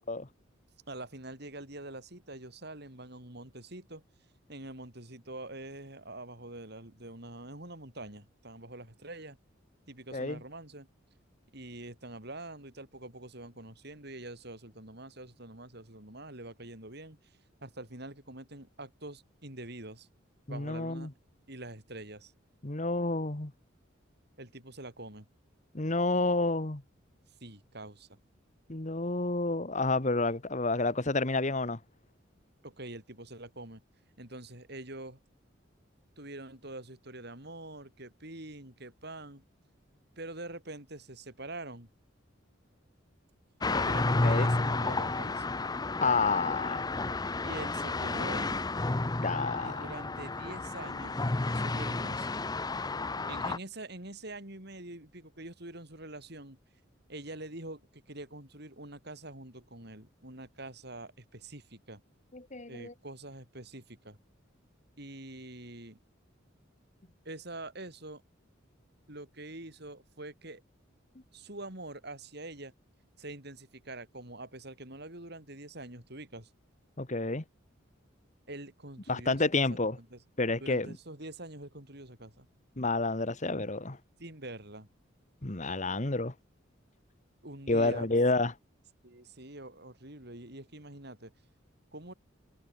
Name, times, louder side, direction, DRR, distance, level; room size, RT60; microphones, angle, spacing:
voice 1, 0.9-4.0 4.5-9.4 9.9-10.9 11.5-17.2 17.6-20.1 20.5-21.1 21.5-22.3 24.4-25.2 27.4-28.2 32.6-33.8 34.2-35.2 36.2-39.4 40.2-41.9 43.8-45.5 47.4-48.6 49.6-52.3 53.3-56.6 57.1-62.0 62.7-64.2 65.0-66.0 67.2-68.2 69.1-70.6 71.3-72.7 73.2-76.5 78.5-80.2 80.6-82.5 84.2-84.9 87.4-88.1 89.0-91.3 91.9-92.1, right 2 dB, 55° right, 6.9 m, -45 dB
voice 2, 20.5-21.1 22.6-23.5 25.7-26.8 28.7-31.8 43.7-43.9 44.2-44.5 46.0-46.8 49.2-49.9 62.3-62.9 77.0-77.4 79.1-80.0 80.4-80.9 82.8-84.0 85.4-86.3 87.7-88.5, left 3 dB, 35° left, 1.5 m, -29 dB
sound 1, 43.6-53.6, left 2 dB, 20° left, 0.7 m, -31 dB
head